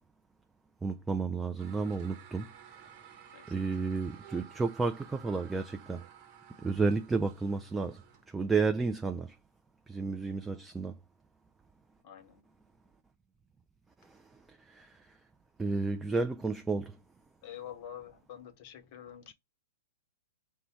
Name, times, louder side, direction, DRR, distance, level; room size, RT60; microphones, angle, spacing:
voice 1, 0.8-2.5 3.5-6.0 6.6-8.0 8.3-9.4 9.9-10.9 14.1-14.2 14.7-14.9 15.6-17.0, right 4 dB, 10° right, 0.3 m, -31 dB
sound 1, 1.6-8.3, right 9 dB, 45° right, 1.0 m, -54 dB
voice 2, 3.3-3.7 12.0-12.4 17.4-19.3, left 10 dB, 45° left, 0.9 m, -47 dB
5.0 x 2.1 x 4.2 m
hypercardioid pair, 110°, 0 cm